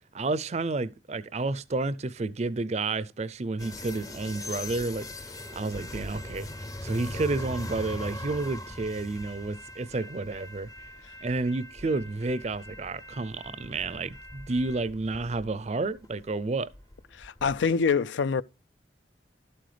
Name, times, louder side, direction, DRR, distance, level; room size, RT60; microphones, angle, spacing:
voice 1, 0.1-5.1 5.5-6.5 6.8-10.7 11.2-16.7, right 3 dB, 40° right, 0.5 m, -30 dB
sound 1, 3.6-17.7, left 1 dB, 20° left, 0.5 m, -41 dB
voice 2, 17.1-18.4, left 5 dB, 85° left, 0.4 m, -25 dB
12.5 x 7.7 x 3.2 m
head